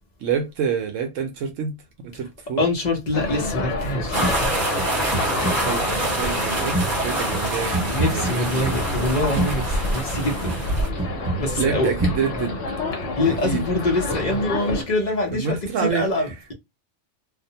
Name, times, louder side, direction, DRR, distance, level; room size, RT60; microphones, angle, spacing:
voice 1, 0.2-1.8 2.0-2.6 5.6-8.7 11.6-12.6 13.4-13.6 15.3-16.3, right 6 dB, 75° right, 0.9 m, -27 dB
voice 2, 2.6-4.6 7.9-10.6 11.4-11.9 13.2-16.5, left 2 dB, 45° left, 0.6 m, -24 dB
sound 1, 3.1-14.8, left 2 dB, 65° left, 1.1 m, -28 dB
sound 2, 3.2-3.9 4.2-4.4 4.8-6.0 6.7-10.6 11.0-13.6 15.0-15.1, right 2 dB, 10° right, 1.0 m, -29 dB
sound 3, 4.1-10.9, right 1 dB, 35° right, 1.0 m, -27 dB
2.4 x 2.1 x 2.7 m
omnidirectional pair, 1.3 m